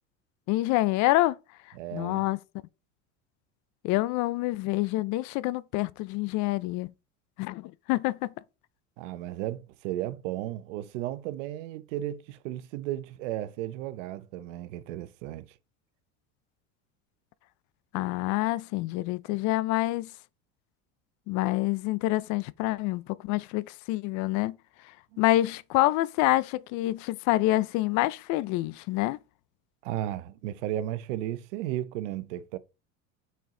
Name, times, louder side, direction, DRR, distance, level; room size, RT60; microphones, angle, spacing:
voice 1, 0.5-1.4 1.9-2.4 3.8-6.9 7.4-8.2 17.9-20.1 21.3-24.6 25.2-29.2, left 17 dB, 55° left, 0.5 m, -27 dB
voice 2, 1.7-2.3 9.0-15.5 25.1-25.2 29.8-32.6, right 13 dB, 80° right, 0.7 m, -34 dB
5.6 x 4.5 x 3.7 m
supercardioid pair, 110°, 36 cm